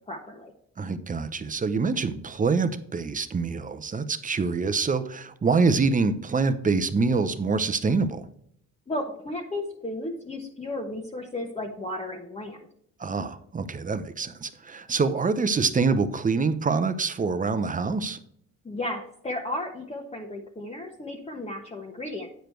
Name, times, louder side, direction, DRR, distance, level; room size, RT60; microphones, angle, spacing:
voice 1, 0.1-0.5 8.9-12.6 18.6-22.3, left 1 dB, 20° left, -1 dB, 1.2 m, -34 dB
voice 2, 0.8-8.3 13.0-18.2, right 4 dB, 25° right, 11 dB, 0.7 m, -25 dB
9.2 x 5.0 x 4.5 m, 0.70 s
cardioid pair, 90°, 30 cm